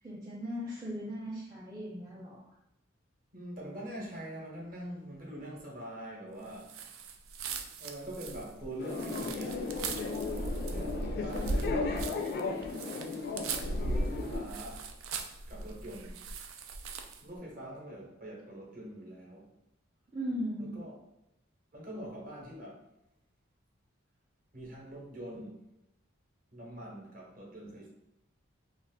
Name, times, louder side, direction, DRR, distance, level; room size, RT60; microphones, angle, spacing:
voice 1, 0.0-2.5 20.1-20.8, equal, 20° right, -7 dB, 0.5 m, -38 dB
voice 2, 3.3-6.7 7.8-9.7 10.7-12.1 13.8-14.9 15.5-16.2 17.2-19.5 20.6-20.9 21.7-22.8 24.5-25.7 26.5-27.9, right 1 dB, 40° right, -3 dB, 0.8 m, -44 dB
sound 1, 6.6-17.3, right 2 dB, 85° right, 0.4 m, -38 dB
sound 2, 8.8-14.4, left 4 dB, 50° left, 0.4 m, -36 dB
2.5 x 2.4 x 3.5 m, 0.86 s
head